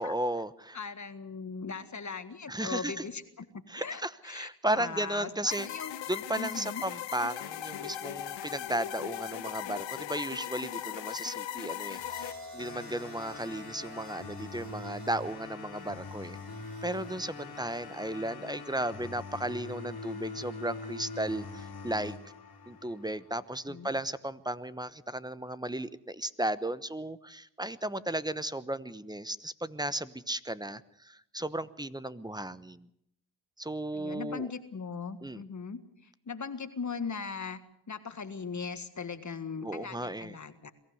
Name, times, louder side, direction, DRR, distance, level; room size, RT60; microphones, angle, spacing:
voice 1, 0.0-0.8 2.5-2.9 3.7-5.7 6.1-16.4 16.8-22.2 22.7-32.9 33.6-34.5 35.2-35.4 39.6-40.4, right 1 dB, 10° right, 15 dB, 1.0 m, -35 dB
voice 2, 0.7-5.9 6.3-6.8 23.7-23.9 33.9-37.6 37.9-40.7, left 5 dB, 40° left, 10 dB, 1.8 m, -39 dB
sound 1, 5.5-12.3, left 11 dB, 85° left, 1.2 m, -38 dB
sound 2, 12.0-20.1 21.3-21.7, left 1 dB, 40° right, 5.4 m, -52 dB
sound 3, 12.6-23.6, left 3 dB, 55° left, 2.7 m, -43 dB
23.0 x 15.0 x 7.9 m, 0.73 s
cardioid pair, 60°, 44 cm